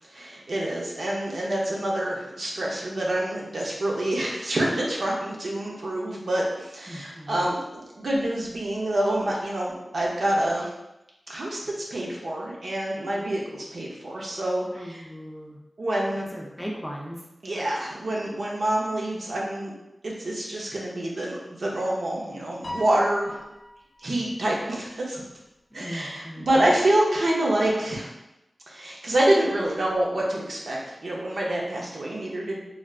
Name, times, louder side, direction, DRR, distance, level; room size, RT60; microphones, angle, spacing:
voice 1, 0.0-10.7 11.3-15.0 15.8-16.2 17.4-19.7 20.0-23.3 24.0-25.2 25.7-28.1 28.7-32.6, right 1 dB, 70° right, -3 dB, 0.6 m, -27 dB
voice 2, 6.9-7.4 14.7-15.6 16.2-17.3 25.7-26.7, equal, 5° left, -2 dB, 0.4 m, -38 dB
Piano, 22.6-24.2, left 1 dB, 55° left, 0.5 m, -39 dB
3.2 x 2.4 x 2.4 m, 0.91 s
wide cardioid pair, 105°, 0 cm